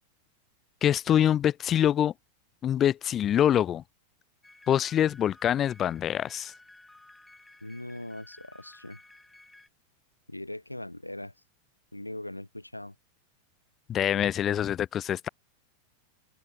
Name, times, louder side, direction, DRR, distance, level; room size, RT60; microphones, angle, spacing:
voice 1, 0.8-2.1 2.6-3.8 4.7-6.5 13.9-15.3, left 10 dB, 30° left, 1.0 m, -25 dB
sound 1, 4.4-9.7, left 2 dB, 5° left, 5.6 m, -55 dB
voice 2, 7.6-9.0 10.3-11.3 11.9-13.0, left 1 dB, 85° left, 5.2 m, -40 dB
figure-of-eight pair, 90°, 0 cm